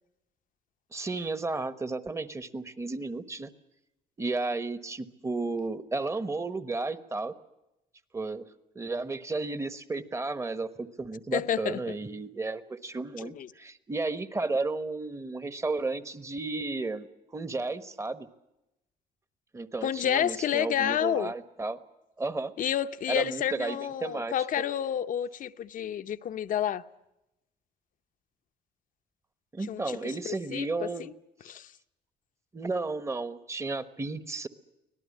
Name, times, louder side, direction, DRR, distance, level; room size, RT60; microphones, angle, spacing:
voice 1, 0.9-3.5 4.2-7.3 8.1-8.5 8.7-17.1 17.3-18.3 19.5-21.8 22.2-22.5 23.1-24.3 29.5-31.1 32.5-34.5, right 3 dB, 15° right, 1.2 m, -33 dB
voice 2, 11.3-12.0 13.2-13.5 19.8-21.3 22.6-26.8 29.7-31.1 31.5-31.7, left 10 dB, 50° left, 0.8 m, -30 dB
24.5 x 18.0 x 8.6 m
cardioid pair, 110°, 17 cm